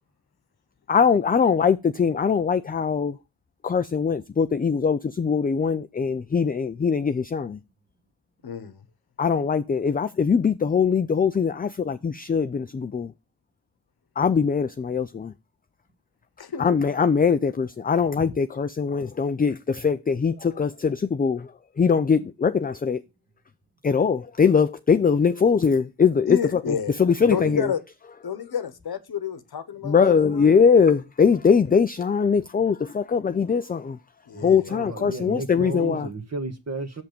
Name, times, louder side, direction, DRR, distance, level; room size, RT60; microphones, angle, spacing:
voice 1, 0.9-3.1 3.6-7.6 9.2-13.1 14.2-15.3 16.6-21.5 21.8-23.0 23.8-27.7 29.8-34.0 34.4-36.1, left 6 dB, 20° left, 0.4 m, -21 dB
voice 2, 8.4-8.8 16.4-16.8 26.3-27.8 28.2-30.5 34.3-34.7, left 7 dB, 60° left, 1.0 m, -30 dB
voice 3, 34.3-37.0, right 3 dB, 35° right, 1.4 m, -33 dB
6.4 x 5.8 x 6.7 m
wide cardioid pair, 95°, 43 cm